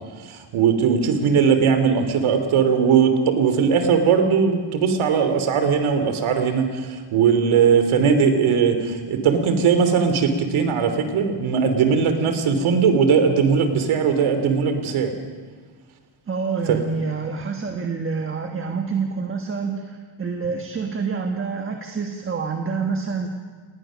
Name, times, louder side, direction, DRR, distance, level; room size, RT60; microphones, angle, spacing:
voice 1, 0.3-15.1 16.7-16.8, right 6 dB, 75° right, 8 dB, 3.1 m, -19 dB
voice 2, 16.3-23.3, right 5 dB, 25° right, 3 dB, 1.5 m, -27 dB
29.0 x 19.5 x 6.4 m, 1.5 s
cardioid pair, 170°, 49 cm